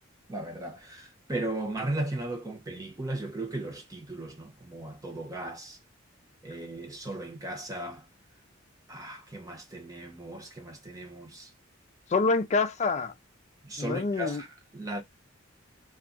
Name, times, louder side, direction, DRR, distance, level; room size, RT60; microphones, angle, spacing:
voice 1, 0.3-5.8 6.4-8.0 8.9-11.5 13.6-15.0, right 1 dB, 20° right, 0.8 m, -36 dB
voice 2, 12.1-13.1 13.8-14.4, left 4 dB, 35° left, 0.4 m, -26 dB
2.3 x 2.2 x 3.8 m
head